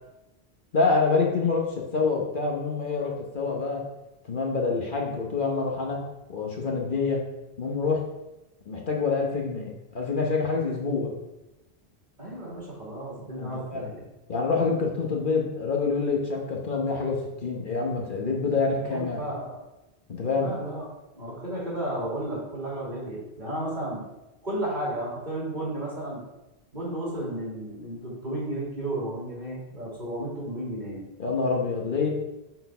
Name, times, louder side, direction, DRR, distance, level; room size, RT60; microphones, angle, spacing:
voice 1, 0.7-3.8 4.2-6.0 6.3-7.2 7.6-8.0 8.7-11.1 13.4-13.8 14.3-19.2 20.1-20.5 31.2-32.1, left 4 dB, 55° left, 0 dB, 1.1 m, -26 dB
voice 2, 12.2-14.0 18.7-19.6 20.3-20.9 21.2-24.0 24.4-26.2 26.7-31.0, right 1 dB, 45° right, -5 dB, 2.9 m, -33 dB
6.1 x 4.5 x 5.5 m, 0.98 s
omnidirectional pair, 1.1 m